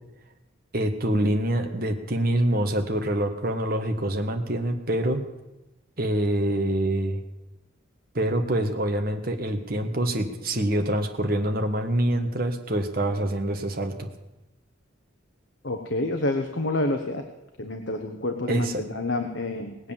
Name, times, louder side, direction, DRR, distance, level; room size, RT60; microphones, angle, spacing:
voice 1, 0.7-5.2 6.0-7.2 8.1-14.1 18.5-18.8, right 1 dB, 45° right, 5 dB, 1.5 m, -25 dB
voice 2, 15.6-17.2 17.6-19.9, left 2 dB, 60° left, 5 dB, 1.1 m, -28 dB
19.5 x 8.0 x 7.3 m, 1.0 s
head